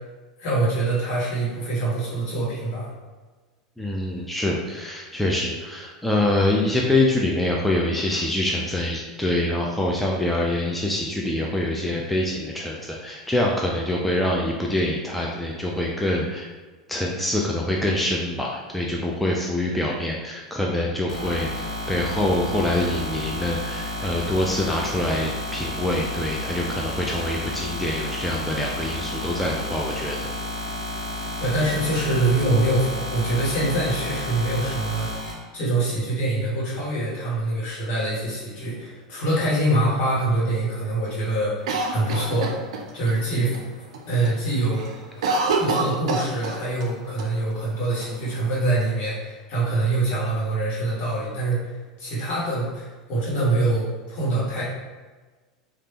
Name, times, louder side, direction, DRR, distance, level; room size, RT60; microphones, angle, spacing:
voice 1, 0.4-2.9 31.4-41.5 41.9-42.5 42.9-43.6 44.1-44.8 45.2-51.6 52.0-54.6, right 2 dB, 50° left, -6 dB, 1.4 m, -24 dB
voice 2, 3.8-16.5 16.9-30.3 43.3-43.5, left 1 dB, 5° left, -2 dB, 0.4 m, -25 dB
sound 1, 21.1-35.3, left 1 dB, 75° left, 1.0 m, -31 dB
Cough, 41.7-43.2 43.5-43.6 43.9-44.4 44.6-46.9 47.2-47.3 48.0-48.8, right 3 dB, 70° right, 0.4 m, -26 dB
3.2 x 2.4 x 2.9 m, 1.3 s
figure-of-eight pair, 85°, 3 cm